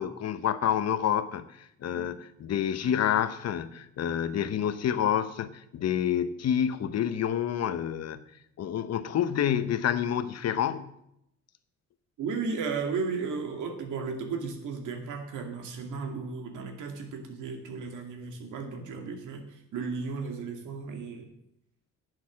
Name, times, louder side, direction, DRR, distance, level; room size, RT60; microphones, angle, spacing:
voice 1, 0.0-1.4 1.8-8.2 8.6-10.9, left 9 dB, 55° left, 13 dB, 0.9 m, -28 dB
voice 2, 12.2-19.5 19.7-21.3, right 5 dB, 80° right, 3 dB, 2.3 m, -34 dB
10.5 x 7.9 x 6.3 m, 0.79 s
cardioid pair, 90°, 30 cm